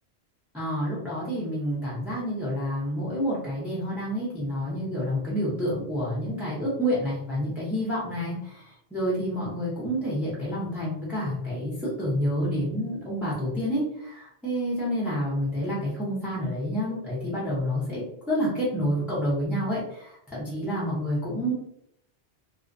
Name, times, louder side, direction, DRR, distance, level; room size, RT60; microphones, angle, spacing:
voice 1, 0.5-8.6 8.9-18.0 18.3-21.5, equal, ahead, -8 dB, 0.6 m, -28 dB
2.4 x 2.1 x 2.5 m, 0.73 s
omnidirectional pair, 1.1 m